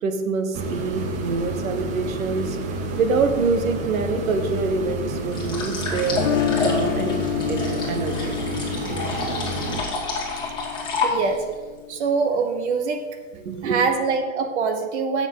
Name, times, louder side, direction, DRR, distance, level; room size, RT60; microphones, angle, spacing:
voice 1, 0.0-2.6 3.0-6.3 6.6-7.1 7.5-8.4 13.3-13.8, right 4 dB, 75° right, 7 dB, 1.6 m, -25 dB
sound 1, 0.5-9.8, right 2 dB, 20° right, 0.6 m, -30 dB
sound 2, 5.3-11.5, left 3 dB, 10° left, 2.5 m, -29 dB
Guitar, 6.1-12.1, left 10 dB, 70° left, 0.7 m, -29 dB
voice 2, 11.0-11.4 11.9-13.1 13.6-15.3, right 5 dB, 55° right, 6 dB, 1.2 m, -23 dB
16.0 x 7.1 x 3.9 m, 1.5 s
hypercardioid pair, 150°, 40 cm